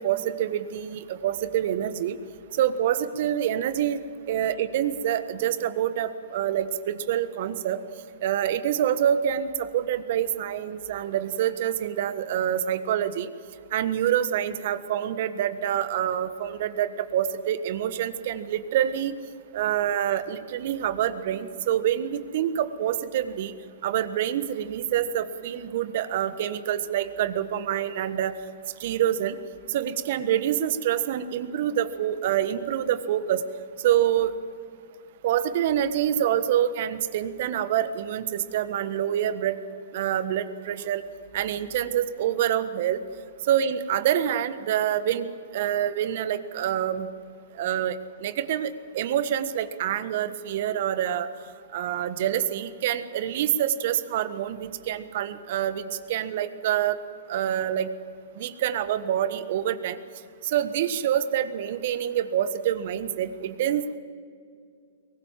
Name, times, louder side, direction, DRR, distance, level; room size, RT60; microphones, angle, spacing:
voice 1, 0.0-2.2 2.5-4.0 4.3-7.8 8.2-13.3 13.7-19.1 19.5-23.5 23.8-28.3 28.8-29.3 29.7-33.4 33.8-34.3 35.2-39.6 39.9-41.0 41.3-43.0 43.5-45.3 45.5-47.1 47.6-48.0 48.2-51.3 51.7-57.0 57.3-57.9 58.4-60.0 60.4-64.0, right 10 dB, 55° right, 12 dB, 1.4 m, -26 dB
23.0 x 19.5 x 7.6 m, 2.3 s
hypercardioid pair, 120°, 0 cm